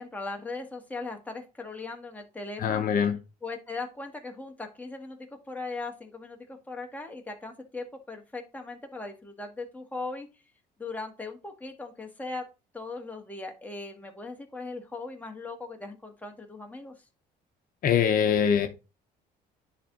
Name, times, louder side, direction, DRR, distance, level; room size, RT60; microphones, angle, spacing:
voice 1, 0.0-2.8 3.4-5.2 5.5-10.3 10.8-12.4 12.7-16.9, left 3 dB, 10° left, 2 dB, 1.7 m, -39 dB
voice 2, 2.6-3.2 17.8-18.7, left 8 dB, 55° left, 6 dB, 0.9 m, -23 dB
10.0 x 3.5 x 3.8 m, 0.29 s
cardioid pair, 110°, 17 cm